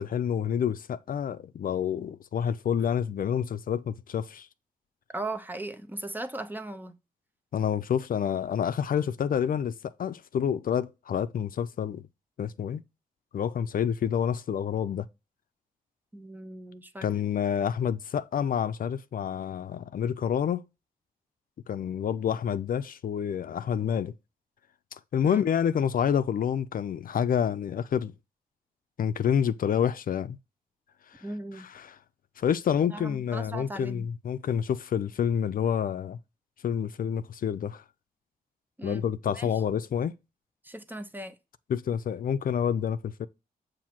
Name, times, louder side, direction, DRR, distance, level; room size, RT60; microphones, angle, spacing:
voice 1, 0.0-4.5 7.5-12.0 12.4-12.8 13.3-15.1 17.0-20.6 21.7-24.1 25.1-28.1 29.0-30.4 31.1-31.2 31.6-32.0 32.4-36.2 36.6-37.8 38.8-40.1 41.7-43.3, left 8 dB, 60° left, 0.4 m, -28 dB
voice 2, 5.1-7.0 16.1-17.0 25.2-25.5 31.2-31.7 32.8-34.1 38.8-39.0 39.4-39.5 40.6-41.4, right 2 dB, 10° right, 0.7 m, -38 dB
7.3 x 2.7 x 5.8 m
wide cardioid pair, 115°, 16 cm